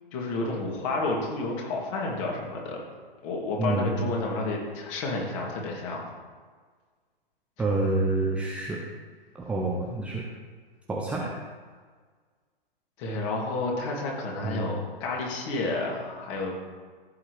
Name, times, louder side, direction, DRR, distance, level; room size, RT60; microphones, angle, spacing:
voice 1, 0.1-2.8 3.2-6.0 13.0-16.7, left 2 dB, 30° left, -1 dB, 2.7 m, -30 dB
voice 2, 3.6-4.0 7.6-8.8 9.3-10.2 10.9-11.3 14.4-14.7, right 2 dB, 5° right, -2 dB, 0.6 m, -28 dB
15.0 x 8.2 x 3.4 m, 1.5 s
figure-of-eight pair, 115°, 29 cm